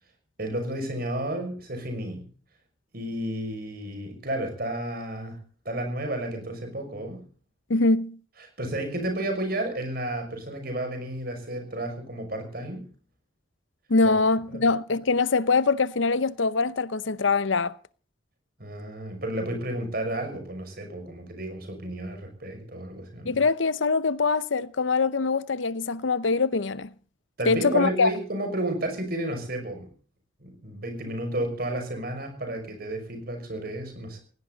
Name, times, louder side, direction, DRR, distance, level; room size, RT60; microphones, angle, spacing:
voice 1, 0.4-2.2 2.9-5.4 5.6-7.2 8.6-12.8 14.5-14.6 18.6-23.4 27.4-29.9 30.4-34.2, right 1 dB, 50° right, 6.0 m, -32 dB
voice 2, 7.7-8.2 13.9-17.8 23.3-26.9 27.5-28.1, left 4 dB, 75° left, 0.7 m, -23 dB
19.0 x 17.0 x 4.0 m
head